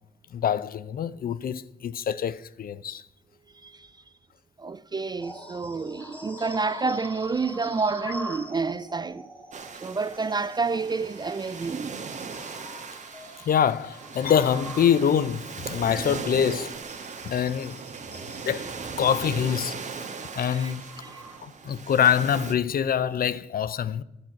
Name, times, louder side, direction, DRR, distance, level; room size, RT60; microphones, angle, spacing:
voice 1, 0.3-3.0 13.5-16.7 17.2-17.8 18.4-18.7 19.0-19.8 20.4-20.8 21.4-24.0, left 8 dB, 50° left, 0.5 m, -25 dB
voice 2, 4.6-9.3 9.8-12.0 20.5-20.7 21.0-21.2, right 4 dB, 20° right, 0.4 m, -29 dB
sound 1, 5.2-21.9 22.3-22.5 23.1-23.2, equal, 5° left, 3.5 m, -45 dB
sound 2, 9.5-22.5, right 5 dB, 35° right, 1.3 m, -38 dB
12.0 x 6.1 x 5.9 m
cardioid pair, 90°, 20 cm